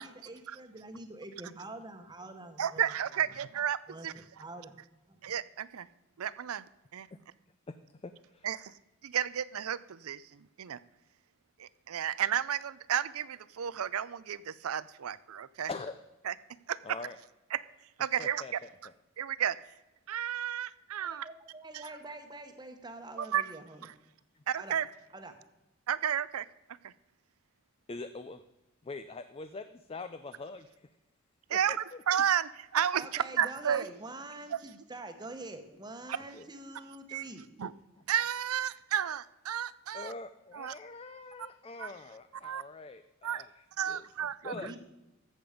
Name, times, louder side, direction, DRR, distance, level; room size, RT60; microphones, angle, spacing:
voice 1, 0.0-2.9 3.9-4.7 5.1-5.2 21.0-23.8 24.6-24.8 25.1-25.3 32.9-37.4 44.5-44.8, right 2 dB, 20° right, 6 dB, 1.1 m, -45 dB
voice 2, 2.6-4.1 5.2-5.9 6.2-6.6 6.9-7.1 8.4-8.7 9.0-10.8 11.6-15.7 16.2-16.3 16.7-16.8 17.5-17.6 18.0-18.4 19.2-19.6 20.1-21.3 21.7-21.8 23.2-23.5 23.8-23.9 24.5-24.9 25.9-26.5 26.8-26.9 31.5-33.8 34.5-34.6 36.1-36.2 37.1-37.2 37.6-37.7 38.1-40.1 40.5-40.7 41.8-41.9 42.4-42.6 43.2-43.4 43.8-44.7, right 9 dB, 80° right, 18 dB, 0.5 m, -32 dB
voice 3, 8.0-8.5 15.7-16.0 16.8-17.2 18.2-18.5 18.8-18.9 27.9-28.4 28.8-30.9 31.5-31.8 36.3-36.5 39.9-44.1 44.4-44.7, left 3 dB, 25° left, 10 dB, 0.4 m, -43 dB
14.0 x 7.9 x 5.0 m, 1.0 s
head